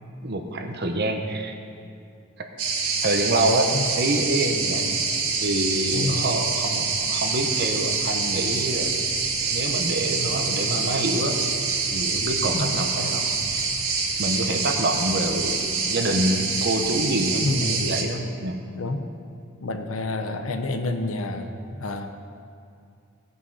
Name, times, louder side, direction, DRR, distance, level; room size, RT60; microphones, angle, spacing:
voice 1, 0.2-1.5 3.0-4.9 5.4-9.0 9.4-11.4 11.9-13.3 14.2-18.6, right 1 dB, 50° right, 4 dB, 1.0 m, -26 dB
sound 1, 2.6-18.0, right 4 dB, 75° right, 1.6 m, -26 dB
voice 2, 5.9-6.3 12.5-12.8 17.4-17.9 18.7-19.0 19.6-22.1, left 2 dB, 65° left, 7 dB, 0.7 m, -29 dB
16.5 x 5.6 x 5.5 m, 2.5 s
head